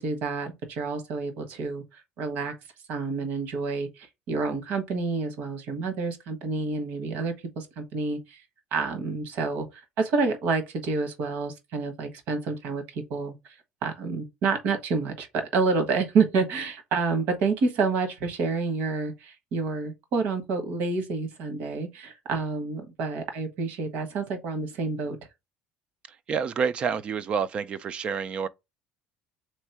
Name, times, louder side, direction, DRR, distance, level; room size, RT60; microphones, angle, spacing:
voice 1, 0.0-1.8 2.2-2.5 2.9-8.4 8.7-9.7 10.0-13.3 13.8-25.2, right 4 dB, 65° right, 1.3 m, -28 dB
voice 2, 26.3-28.5, right 6 dB, 35° right, 0.4 m, -28 dB
3.6 x 3.2 x 4.6 m
cardioid pair, 145°, 3 cm